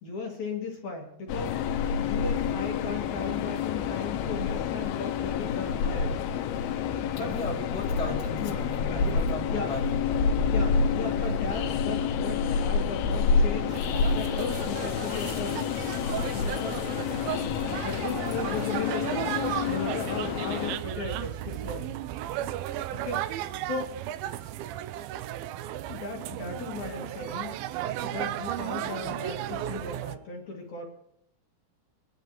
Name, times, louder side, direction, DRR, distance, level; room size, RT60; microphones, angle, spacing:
voice 1, 0.0-1.6 1.9-6.2 7.1-7.3 8.0-8.6 8.9-9.2 9.5-9.7 10.5-13.8 14.1-15.7 16.3-17.2 17.8-19.2 19.7-22.0 22.9-23.9 25.9-27.5 28.0-30.8, left 4 dB, 55° left, 0 dB, 2.4 m, -36 dB
Train, 1.3-20.8, left 6 dB, 80° left, 2.7 m, -28 dB
voice 2, 7.2-10.3, left 1 dB, ahead, -4 dB, 1.4 m, -37 dB
sound 1, 13.7-30.2, right 12 dB, 80° right, 2.2 m, -35 dB
22.5 x 10.5 x 3.0 m, 0.74 s
omnidirectional pair, 4.6 m